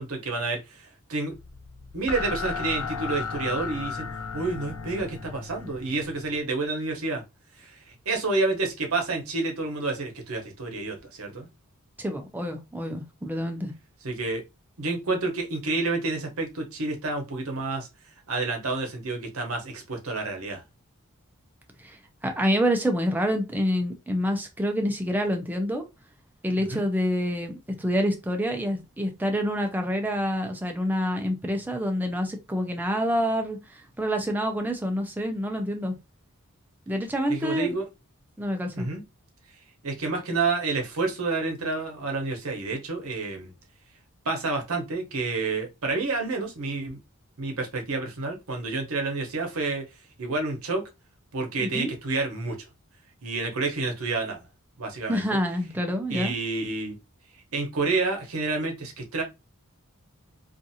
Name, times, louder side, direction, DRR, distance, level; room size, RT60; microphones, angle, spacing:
voice 1, 0.0-1.3 1.9-4.1 4.3-7.2 7.6-11.5 14.0-14.4 14.8-17.9 18.3-20.6 26.7-26.8 37.3-37.9 38.8-39.0 39.8-43.5 44.2-47.0 47.4-49.9 50.2-50.8 51.3-52.7 53.2-54.4 54.8-55.4 56.1-57.0 57.5-59.2, right 3 dB, 70° right, 0.9 m, -29 dB
sound 1, 1.3-6.4, left 5 dB, 70° left, 0.4 m, -35 dB
voice 2, 12.0-13.7 21.8-25.8 26.4-35.9 36.9-37.7 38.4-38.9 51.6-51.9 55.1-56.3, equal, 10° right, 0.5 m, -27 dB
2.5 x 2.5 x 2.7 m
head